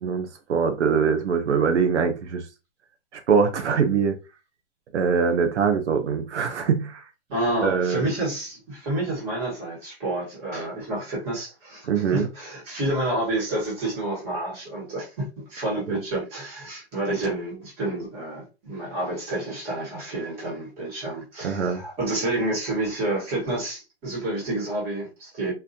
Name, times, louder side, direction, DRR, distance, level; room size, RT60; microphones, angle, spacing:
voice 1, 0.0-2.4 3.3-4.2 4.9-7.0 7.6-8.1 11.9-12.3 21.4-21.8, right 6 dB, 80° right, 0.8 m, -23 dB
voice 2, 7.3-25.5, right 2 dB, 20° right, 1.4 m, -29 dB
4.0 x 2.6 x 2.7 m
hypercardioid pair, 170°, 34 cm